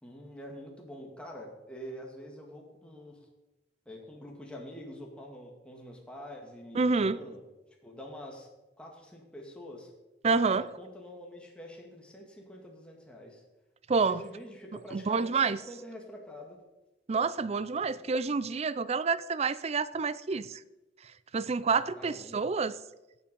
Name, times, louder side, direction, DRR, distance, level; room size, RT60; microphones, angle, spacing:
voice 1, 0.0-3.2 3.9-7.4 7.8-8.5 8.8-9.9 10.3-13.4 14.1-16.6 17.7-18.1 22.0-22.4, equal, 5° left, 2.1 m, -46 dB
voice 2, 6.7-7.2 10.2-10.7 13.9-14.2 14.9-15.6 17.1-20.6 21.0-22.8, right 4 dB, 35° right, 0.5 m, -28 dB
16.0 x 7.1 x 5.3 m
head